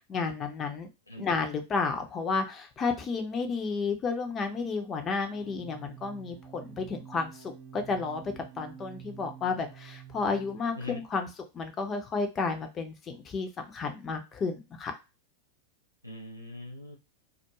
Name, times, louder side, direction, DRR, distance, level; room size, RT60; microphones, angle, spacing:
voice 1, 0.1-0.9 1.2-11.3 11.5-14.9, left 4 dB, 25° left, 5 dB, 0.6 m, -32 dB
sound 1, 5.3-11.0, right 9 dB, 35° right, 0.4 m, -48 dB
voice 2, 16.0-17.0, left 1 dB, 85° left, 1 dB, 0.5 m, -41 dB
2.3 x 2.1 x 2.9 m, 0.27 s
figure-of-eight pair, 90°, 0 cm